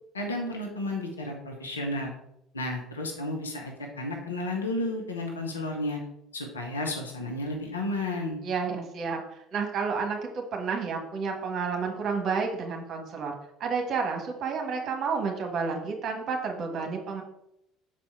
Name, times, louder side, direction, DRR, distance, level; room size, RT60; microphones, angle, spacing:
voice 1, 0.1-2.1 2.5-6.0 6.3-8.4, left 1 dB, 80° left, 1 dB, 0.9 m, -32 dB
voice 2, 8.4-9.2 9.5-13.3 13.6-17.2, right 5 dB, 45° right, 2 dB, 1.4 m, -30 dB
6.1 x 4.2 x 4.7 m, 0.79 s
figure-of-eight pair, 60°, 0 cm